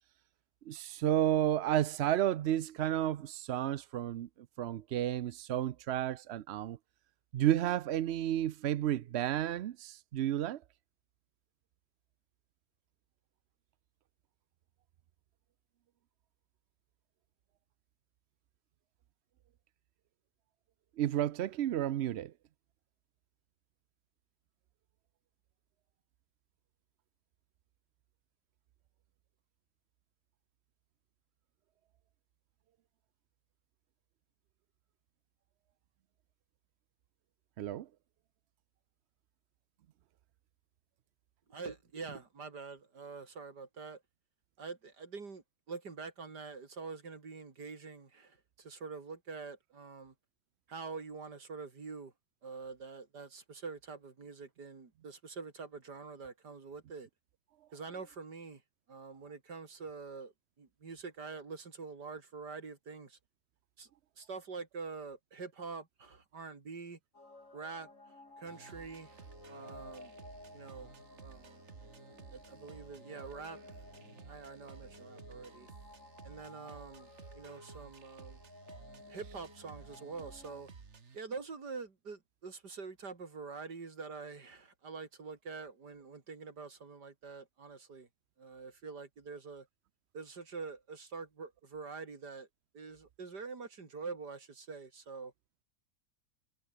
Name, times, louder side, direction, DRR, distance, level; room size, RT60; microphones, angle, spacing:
voice 1, 0.7-4.3 4.6-6.8 7.3-10.6 21.0-22.3 37.6-37.9, right 12 dB, 70° right, 0.6 m, -31 dB
voice 2, 41.5-44.0 44.6-50.1 50.7-52.1 52.4-57.1 57.7-58.6 58.9-63.2 63.8-63.9 64.2-67.0 67.5-70.1 70.5-71.7 72.3-73.6 74.3-75.7 76.2-77.1 77.4-78.4 79.1-80.7 81.1-88.1 88.4-89.7 90.1-92.5 92.7-95.3, right 4 dB, 85° right, 3.6 m, -45 dB
sound 1, 67.1-80.6, left 2 dB, 50° left, 5.0 m, -55 dB
sound 2, 68.5-81.2, right 5 dB, 45° right, 1.9 m, -54 dB
omnidirectional pair, 1.7 m